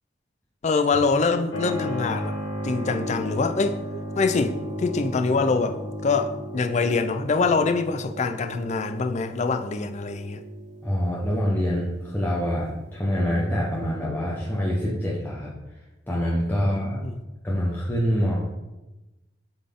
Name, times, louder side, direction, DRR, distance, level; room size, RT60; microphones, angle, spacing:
voice 1, 0.6-2.3 2.6-3.8 4.2-10.4 16.6-17.2, left 4 dB, 40° left, 0.4 m, -24 dB
Keyboard (musical), 1.5-13.9, equal, 80° left, 1.3 m, -35 dB
voice 2, 10.8-15.5 16.1-17.0 17.4-18.4, equal, 10° left, 0.8 m, -25 dB
7.5 x 4.0 x 3.6 m
head